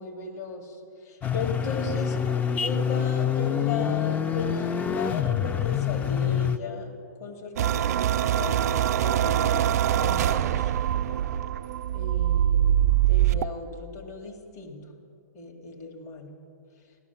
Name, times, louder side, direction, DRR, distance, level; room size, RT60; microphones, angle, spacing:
voice 1, 0.0-2.2 2.6-6.9 7.2-10.7 11.9-12.8 13.1-14.8 15.3-16.3, left 3 dB, 65° left, 3 dB, 2.1 m, -36 dB
sound 1, 1.2-6.6, left 9 dB, 15° left, 0.4 m, -26 dB
sound 2, 7.6-13.4, right 11 dB, 60° right, 0.5 m, -23 dB
16.0 x 12.0 x 7.1 m, 2.5 s
hypercardioid pair, 125°, 9 cm